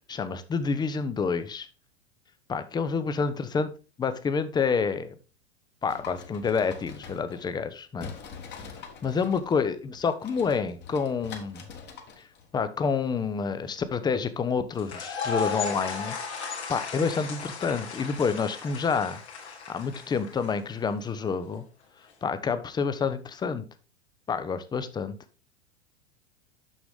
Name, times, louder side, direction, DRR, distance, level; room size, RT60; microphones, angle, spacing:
voice 1, 0.1-1.7 2.5-3.7 4.0-5.2 5.8-8.1 9.0-11.6 12.5-16.2 16.4-19.2 19.7-21.6 22.2-23.6 24.3-25.1, left 5 dB, 15° left, 12 dB, 0.5 m, -28 dB
sound 1, 5.8-7.7 8.0-12.5, left 6 dB, 30° left, 1.3 m, -45 dB
sound 2, 14.8-20.8, left 5 dB, 75° left, 1.9 m, -35 dB
6.3 x 6.1 x 3.5 m, 0.33 s
hypercardioid pair, 95°, 34 cm